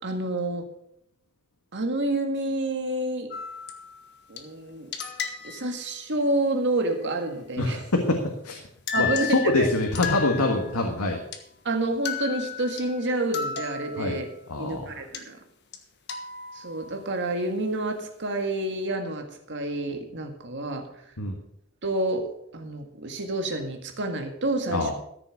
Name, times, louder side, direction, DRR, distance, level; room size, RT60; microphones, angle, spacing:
voice 1, 0.0-0.6 1.7-3.3 4.3-4.9 5.4-7.8 8.9-9.7 11.6-14.3 14.6-15.4 16.5-20.9 21.8-24.9, right 2 dB, 55° right, 5 dB, 1.8 m, -28 dB
sound 1, 3.3-4.4 4.9-5.9 8.6-8.7 8.9-10.9 11.3-11.4 12.1-14.5 15.1-15.2 15.7-15.8 16.1-17.2, left 7 dB, 50° left, 1.4 m, -34 dB
voice 2, 7.6-8.6 9.0-11.2 14.0-14.2 14.5-14.9 21.2-21.4 24.7-24.9, left 2 dB, 85° left, 2 dB, 1.6 m, -25 dB
14.0 x 6.9 x 6.4 m, 0.73 s
head